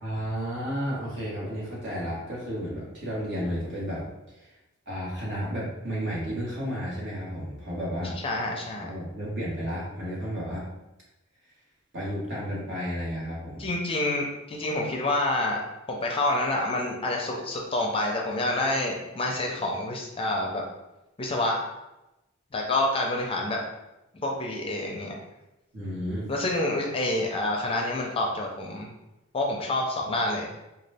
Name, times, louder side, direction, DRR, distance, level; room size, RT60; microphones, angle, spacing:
voice 1, 0.0-4.0 4.4-4.5 4.9-8.1 8.8-10.6 11.9-13.7 25.7-26.3, equal, 60° right, -5 dB, 1.4 m, -32 dB
voice 2, 8.2-8.9 13.6-20.6 21.2-21.6 22.5-23.6 24.1-25.2 26.3-28.9 29.3-30.5, left 2 dB, 25° left, 0 dB, 0.5 m, -28 dB
3.8 x 2.3 x 3.3 m, 0.96 s
head